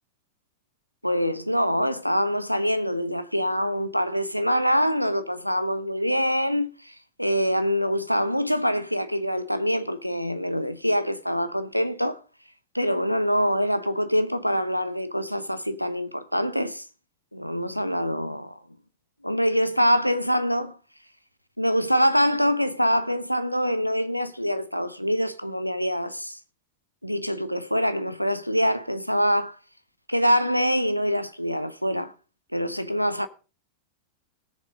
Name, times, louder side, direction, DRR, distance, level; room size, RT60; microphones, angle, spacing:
voice 1, 1.0-12.2 12.7-16.9 17.3-18.6 19.2-20.8 21.6-26.4 27.0-29.6 30.1-32.1 32.5-33.3, equal, 90° left, 0.8 m, -25 dB
20.0 x 7.0 x 3.7 m
figure-of-eight pair, 90°, 0 cm